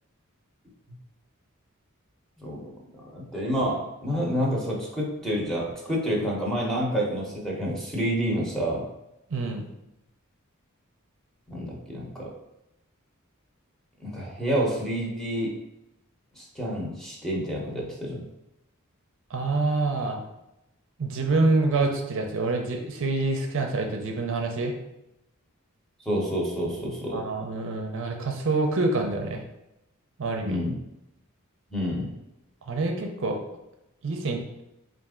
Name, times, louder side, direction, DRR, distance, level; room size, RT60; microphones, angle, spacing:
voice 1, 2.4-8.9 11.5-12.3 14.0-15.6 16.4-18.2 26.0-27.2 30.4-30.7 31.7-32.1, equal, ahead, -4 dB, 0.9 m, -28 dB
voice 2, 9.3-9.6 19.3-20.2 21.0-24.7 27.1-29.4 30.2-30.6 32.6-33.4 34.0-34.6, right 3 dB, 65° right, 2 dB, 0.6 m, -26 dB
4.2 x 2.5 x 3.6 m, 0.88 s
head